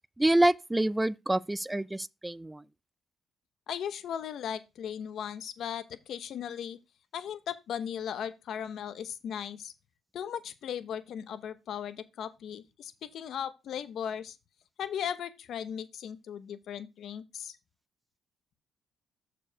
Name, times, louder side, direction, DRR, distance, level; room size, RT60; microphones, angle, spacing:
voice 1, 0.2-2.6, right 1 dB, 10° right, 0.4 m, -27 dB
voice 2, 3.7-6.8 7.1-9.7 10.1-14.4 14.8-17.6, left 9 dB, 70° left, 0.9 m, -37 dB
6.9 x 5.0 x 4.8 m
cardioid pair, 90°, 0 cm